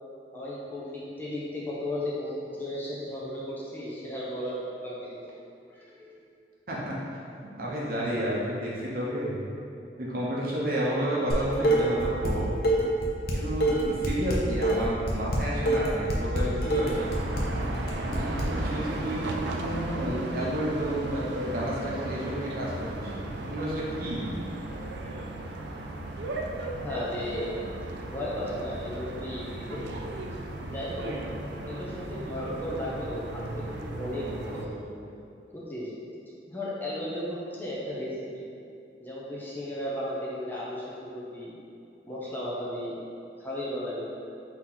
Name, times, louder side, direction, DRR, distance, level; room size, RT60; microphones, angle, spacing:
voice 1, 0.3-5.2 5.7-6.2 26.8-27.6 28.1-29.8 30.6-31.3 31.6-35.0 35.5-35.9 36.5-38.5 39.0-41.6 42.1-43.0 43.4-44.1, left 1 dB, 10° left, -7 dB, 0.6 m, -35 dB
voice 2, 7.6-9.4 10.0-12.5 13.3-17.2 18.0-24.3, equal, 55° right, -6 dB, 0.9 m, -31 dB
Dishes pots and pans, 11.3-12.3 12.6-18.4, right 1 dB, 60° left, 0.6 m, -26 dB
sound 1, 17.0-34.7, right 2 dB, 70° right, 0.4 m, -36 dB
4.2 x 2.9 x 3.9 m, 2.5 s
head